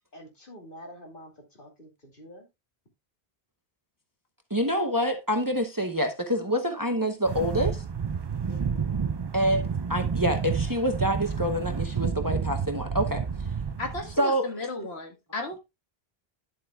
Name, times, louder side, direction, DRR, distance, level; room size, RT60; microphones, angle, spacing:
voice 1, 0.1-2.5 8.5-8.9, equal, 55° left, 2.7 m, -47 dB
voice 2, 4.5-7.8 9.3-13.2 14.2-14.5, equal, 20° right, 0.8 m, -26 dB
sound 1, 7.3-14.2, right 6 dB, 45° right, 0.3 m, -30 dB
voice 3, 13.8-15.6, left 2 dB, 80° left, 1.9 m, -34 dB
10.5 x 7.7 x 2.3 m
omnidirectional pair, 1.1 m